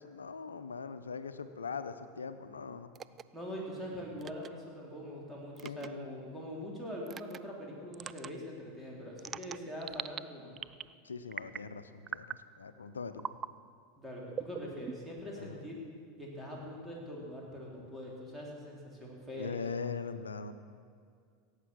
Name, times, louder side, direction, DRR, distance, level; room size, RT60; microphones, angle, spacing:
voice 1, 0.0-2.9 5.6-6.1 11.0-13.4 15.4-15.6 19.3-20.5, left 5 dB, 90° left, 11 dB, 0.7 m, -41 dB
sound 1, 2.9-3.2 4.2-4.5 5.6-5.9 7.1-7.4 7.9-8.3 9.2-10.2 10.6-10.9 11.3-11.7 12.1-12.4 13.2-13.5 14.3-15.2, right 8 dB, 30° right, 0.4 m, -41 dB
voice 2, 3.3-10.5 14.0-15.8 16.2-19.6, equal, 5° right, -4 dB, 4.2 m, -43 dB
17.0 x 8.3 x 6.3 m, 2.2 s
hypercardioid pair, 90°, 0 cm